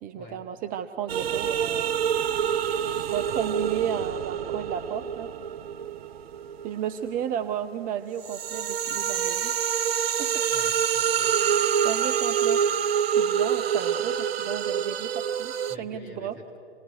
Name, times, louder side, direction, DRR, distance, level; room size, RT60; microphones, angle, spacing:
voice 1, 0.0-2.0 3.1-5.3 6.6-9.6 10.2-10.3 11.8-12.6 13.1-16.3, right 9 dB, 25° right, 9 dB, 0.7 m, -33 dB
sound 1, 1.1-7.5 7.9-15.8, right 8 dB, 65° right, 0.6 m, -26 dB
voice 2, 10.4-11.5 15.7-16.6, left 1 dB, 30° left, 0 dB, 4.5 m, -46 dB
27.5 x 20.0 x 6.5 m, 2.7 s
figure-of-eight pair, 100°, 33 cm